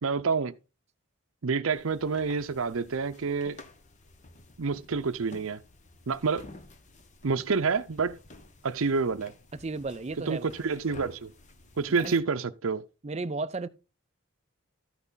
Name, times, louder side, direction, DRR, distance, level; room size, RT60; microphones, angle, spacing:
voice 1, 0.0-0.5 1.4-3.6 4.6-5.6 6.1-6.5 7.2-8.2 8.6-9.3 10.3-11.3 11.8-12.8, right 5 dB, 70° right, 0.6 m, -28 dB
sound 1, 1.7-12.2, left 2 dB, 35° left, 0.9 m, -52 dB
voice 2, 9.6-10.5 12.0-12.2 13.0-13.7, right 3 dB, 30° right, 0.5 m, -34 dB
13.0 x 6.0 x 4.0 m
head